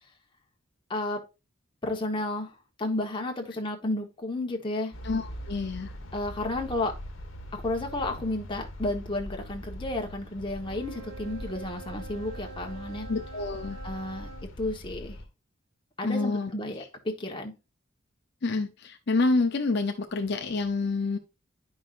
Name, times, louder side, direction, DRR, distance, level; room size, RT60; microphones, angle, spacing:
voice 1, 0.9-1.2 1.8-4.9 6.1-6.9 7.5-13.1 13.8-14.3 14.6-15.2 16.0-17.5, left 2 dB, 25° left, 1.1 m, -32 dB
sound 1, 4.9-15.2, equal, 75° left, 1.2 m, -42 dB
voice 2, 5.0-6.0 13.1-13.8 16.0-16.5 16.8-16.9 18.4-21.2, left 3 dB, 50° left, 0.6 m, -28 dB
Wind instrument woodwind instrument, 10.5-14.5, right 3 dB, 70° right, 1.7 m, -46 dB
10.0 x 5.4 x 2.5 m
head